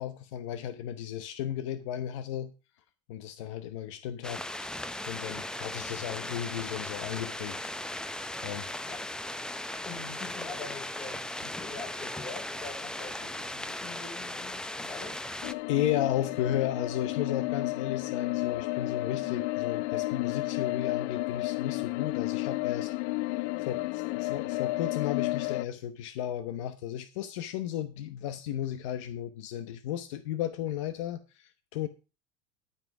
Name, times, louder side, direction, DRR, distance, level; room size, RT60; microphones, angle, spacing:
voice 1, 0.0-2.5 3.1-4.4 5.1-7.7 8.4-8.7 15.7-22.9 23.6-31.9, left 11 dB, 80° left, 1.0 m, -34 dB
sound 1, 4.2-15.5, left 1 dB, 5° left, 0.7 m, -37 dB
voice 2, 9.8-15.2, left 4 dB, 30° left, 5.7 m, -44 dB
sound 2, 15.4-25.7, left 22 dB, 60° left, 0.4 m, -32 dB
13.0 x 5.8 x 6.0 m
supercardioid pair, 125°, 16 cm